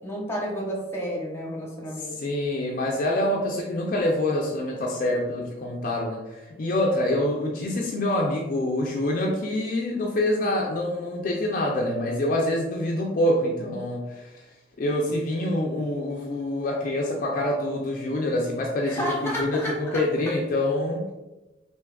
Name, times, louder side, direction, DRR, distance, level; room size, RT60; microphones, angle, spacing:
voice 1, 0.0-2.2 18.8-20.0, equal, 15° left, -3 dB, 0.7 m, -31 dB
voice 2, 2.2-14.4 14.8-21.0, left 1 dB, 45° left, -1 dB, 0.4 m, -26 dB
3.4 x 2.7 x 2.3 m, 1.1 s
head